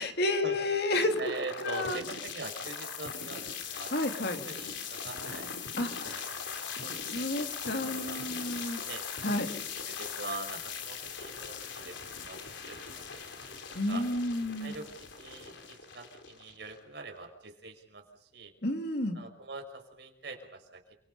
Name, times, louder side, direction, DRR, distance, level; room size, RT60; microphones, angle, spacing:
voice 1, 0.0-1.1 1.6-2.0 3.9-4.4 5.8-6.3 7.1-8.8 9.2-9.5 13.7-14.7 18.6-19.2, left 2 dB, 60° left, 5 dB, 2.8 m, -31 dB
sound 1, 1.0-17.0, left 6 dB, 85° left, 3.8 m, -40 dB
voice 2, 1.2-3.9 4.4-5.5 6.0-7.3 7.6-9.0 9.9-12.0 12.2-14.1 14.6-18.5 19.1-20.8, right 3 dB, 65° right, 3 dB, 5.5 m, -44 dB
29.5 x 24.5 x 5.5 m, 0.70 s
head